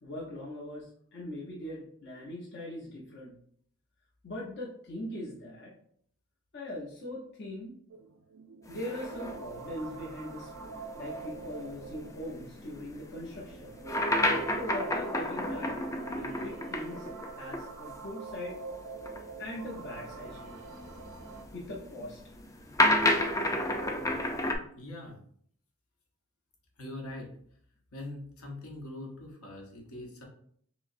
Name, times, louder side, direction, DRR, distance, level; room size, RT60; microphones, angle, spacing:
voice 1, 0.0-3.4 4.2-5.7 6.5-7.8 8.7-13.8 14.5-15.8 16.1-17.1 17.4-18.6 19.4-20.6 21.5-22.2, left 1 dB, 50° left, -4 dB, 0.8 m, -41 dB
sound 1, 7.9-21.4, right 4 dB, 90° right, 0.4 m, -45 dB
sound 2, 8.7-17.7 17.9-18.0 18.9-24.5, left 1 dB, 15° left, 0.3 m, -32 dB
voice 2, 24.7-25.2 26.8-27.3 27.9-30.2, left 1 dB, 75° left, 0 dB, 1.0 m, -42 dB
5.9 x 2.0 x 2.6 m, 0.63 s
head